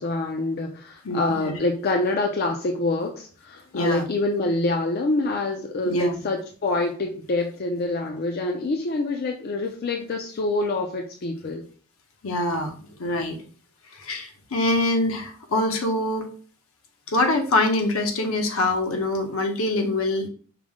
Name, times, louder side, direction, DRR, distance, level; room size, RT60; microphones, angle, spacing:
voice 1, 0.0-11.7, left 2 dB, 45° left, 2 dB, 0.4 m, -26 dB
voice 2, 1.0-1.6 3.7-4.0 5.9-6.2 12.2-13.4 13.9-16.3 17.1-20.3, left 2 dB, 70° left, 4 dB, 0.8 m, -24 dB
5.0 x 2.0 x 3.5 m, 0.41 s
head